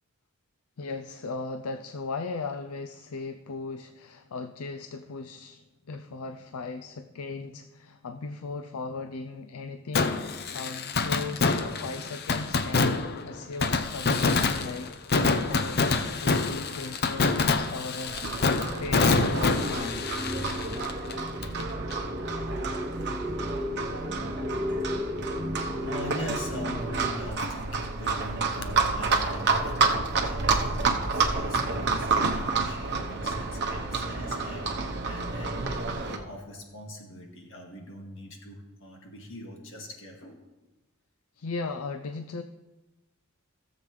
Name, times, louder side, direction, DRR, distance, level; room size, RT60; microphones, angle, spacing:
voice 1, 0.8-15.8 16.1-18.2 18.8-20.1 41.4-42.4, left 3 dB, 80° left, 8 dB, 0.5 m, -37 dB
Fireworks, 9.9-21.6 21.9-22.0 28.6-28.7, left 4 dB, 50° left, 0.7 m, -26 dB
Livestock farm animals working animals, 18.1-36.2, right 4 dB, 55° right, 1.0 m, -30 dB
sound 1, 18.4-27.3, left 1 dB, 15° right, 0.7 m, -35 dB
voice 2, 25.8-34.7 35.0-40.4, equal, 65° left, 1 dB, 2.0 m, -41 dB
17.0 x 7.3 x 3.3 m, 1.1 s
head